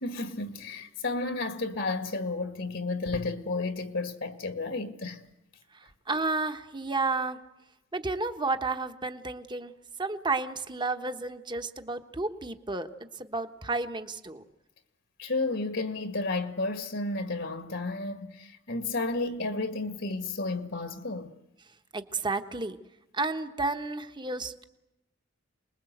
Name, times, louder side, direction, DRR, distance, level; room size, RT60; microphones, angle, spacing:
voice 1, 0.0-5.2 15.2-21.3, left 3 dB, 70° left, 1.9 m, -32 dB
voice 2, 5.7-7.4 7.9-9.7 10.0-14.4 21.9-22.8 23.1-24.6, right 3 dB, 25° right, 1.3 m, -32 dB
28.5 x 21.0 x 8.0 m
head